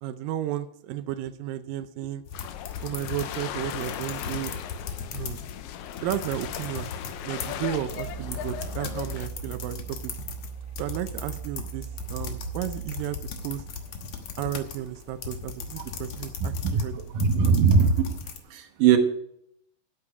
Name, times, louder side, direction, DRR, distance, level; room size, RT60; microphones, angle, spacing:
voice 1, 0.0-2.2 2.8-4.6 5.1-5.4 6.0-6.9 7.2-10.1 10.8-13.6 14.4-16.9, right 12 dB, 85° right, 10 dB, 1.9 m, -33 dB
sound 1, 2.3-9.3, left 10 dB, 85° left, 2.8 m, -37 dB
sound 2, 2.3-5.6 5.9-18.4, left 6 dB, 60° left, 1.8 m, -38 dB
Mechanical fan, 5.9-17.2, right 7 dB, 5° right, 3.7 m, -41 dB
voice 2, 16.4-18.1 18.5-19.0, right 6 dB, 65° right, 6 dB, 2.4 m, -21 dB
11.0 x 8.9 x 4.9 m, 0.73 s
omnidirectional pair, 4.6 m